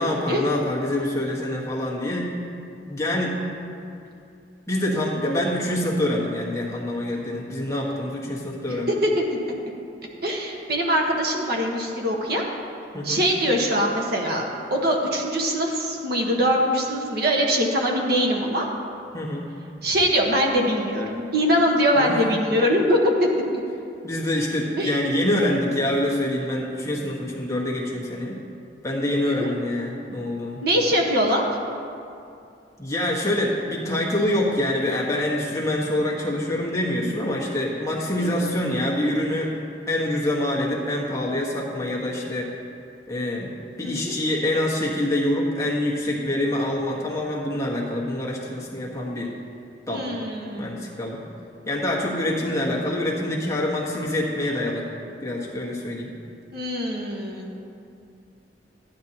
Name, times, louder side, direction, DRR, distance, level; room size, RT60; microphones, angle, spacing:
voice 1, 0.0-2.3 2.9-3.4 4.7-8.9 12.9-13.3 19.1-19.5 21.9-22.2 24.0-28.4 28.8-30.6 32.8-39.5 39.9-42.5 43.1-49.3 49.9-50.1 50.6-51.2 51.7-54.9 55.2-56.1, left 1 dB, 15° left, -4 dB, 1.4 m, -25 dB
voice 2, 10.2-12.4 13.0-14.4 14.7-18.7 19.8-23.0 24.8-25.0 29.2-29.5 30.6-31.4 38.2-38.3 43.8-44.1 49.9-50.8 56.5-57.5, equal, 60° right, 0 dB, 1.3 m, -23 dB
13.5 x 10.5 x 2.9 m, 2.5 s
head